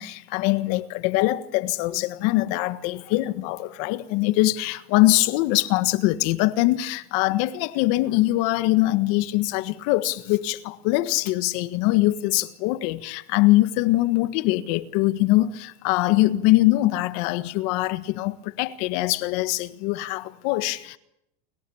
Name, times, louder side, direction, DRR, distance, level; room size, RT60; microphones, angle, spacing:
voice 1, 0.0-21.0, left 18 dB, 55° left, 1.6 m, -23 dB
30.0 x 23.0 x 7.1 m
supercardioid pair, 145°, 30 cm